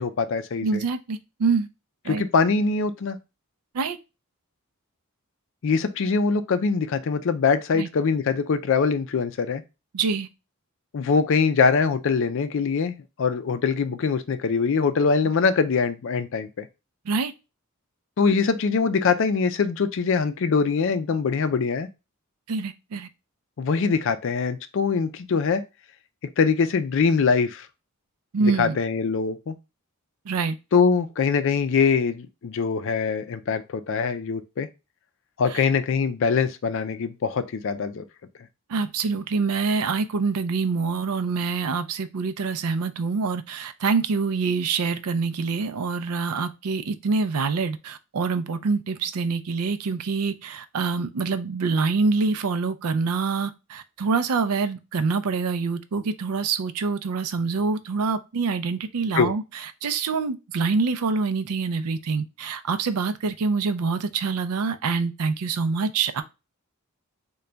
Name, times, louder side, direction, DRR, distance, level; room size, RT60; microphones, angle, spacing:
voice 1, 0.0-0.8 2.1-3.2 5.6-9.6 10.9-16.7 18.2-21.9 23.6-25.6 26.4-27.7 28.6-29.5 30.7-34.7 35.4-38.0 59.1-59.3, left 5 dB, 60° left, 0.4 m, -23 dB
voice 2, 0.6-1.7 2.0-2.2 3.7-4.0 7.7-7.9 9.9-10.3 17.1-17.3 22.5-23.1 28.3-28.8 30.3-30.6 35.5-35.6 38.7-59.4 59.8-66.2, right 4 dB, 85° right, 0.4 m, -25 dB
3.9 x 2.2 x 3.2 m
head